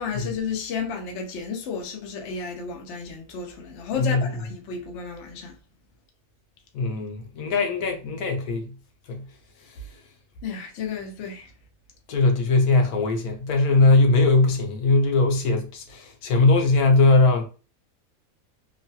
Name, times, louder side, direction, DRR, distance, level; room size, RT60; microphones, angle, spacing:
voice 1, 0.0-5.6 10.4-11.5, left 6 dB, 60° left, 0.8 m, -32 dB
voice 2, 4.0-4.3 6.7-8.7 9.1-9.2 12.1-17.5, left 3 dB, 80° left, 1.1 m, -20 dB
3.0 x 2.2 x 2.7 m
omnidirectional pair, 1.6 m